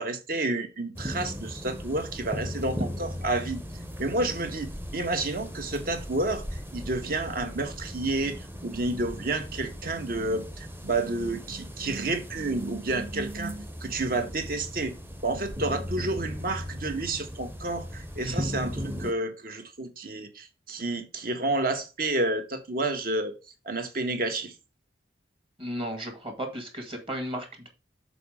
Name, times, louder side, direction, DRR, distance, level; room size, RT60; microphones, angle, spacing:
voice 1, 0.0-3.6 4.0-15.0 15.2-23.3 23.6-24.5, right 2 dB, 55° right, 1.3 m, -30 dB
sound 1, 1.0-19.1, equal, 15° right, 0.7 m, -38 dB
voice 2, 25.6-27.7, equal, 30° right, 2.0 m, -35 dB
7.0 x 4.2 x 4.9 m
head